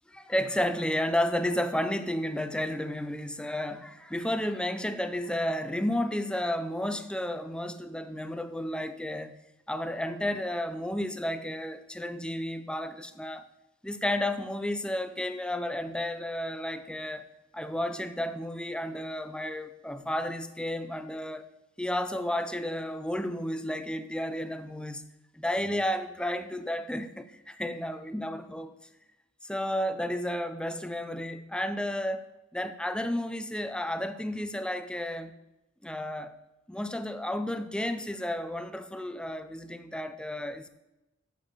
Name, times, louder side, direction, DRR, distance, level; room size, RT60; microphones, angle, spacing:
voice 1, 0.2-9.3 9.7-13.5 13.8-21.5 21.8-25.1 25.3-28.7 29.4-35.3 35.8-36.3 36.7-40.7, left 1 dB, 5° left, 0.5 m, -32 dB
8.7 x 6.7 x 6.6 m
head